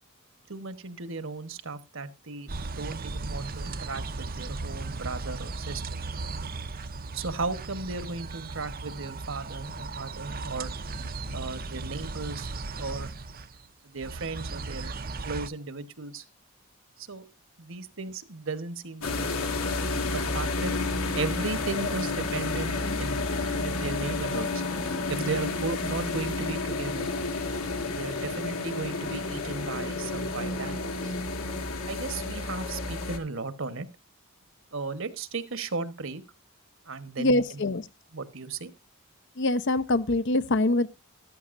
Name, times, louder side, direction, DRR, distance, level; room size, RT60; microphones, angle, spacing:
voice 1, 0.5-5.8 7.1-10.7 11.3-12.5 12.8-13.1 13.8-15.0 15.2-16.2 17.0-17.2 17.6-20.7 21.1-23.2 23.6-24.6 25.1-27.1 27.9-31.1 31.9-33.9 34.7-36.2 36.8-37.6 38.1-38.7, right 3 dB, 60° right, 1.2 m, -35 dB
sound 1, 2.5-13.7 14.0-15.5, right 3 dB, 40° right, 0.7 m, -36 dB
sound 2, 19.0-33.2, left 3 dB, 75° left, 2.0 m, -31 dB
voice 2, 37.2-37.8 39.4-40.9, left 2 dB, 55° left, 0.7 m, -24 dB
14.0 x 13.0 x 2.6 m
head